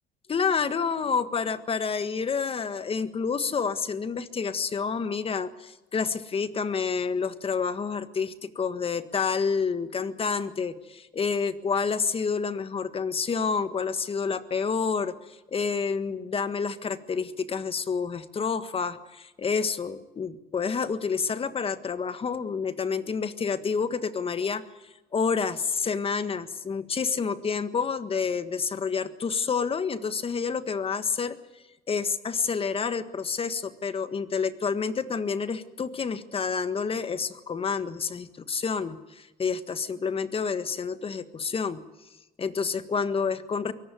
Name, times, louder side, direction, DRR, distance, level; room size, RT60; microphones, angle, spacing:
voice 1, 0.3-24.6 25.1-31.4 31.9-41.8 42.4-43.7, left 5 dB, 35° left, 11 dB, 1.6 m, -29 dB
23.0 x 18.5 x 9.4 m, 1.0 s
cardioid pair, 110°, 17 cm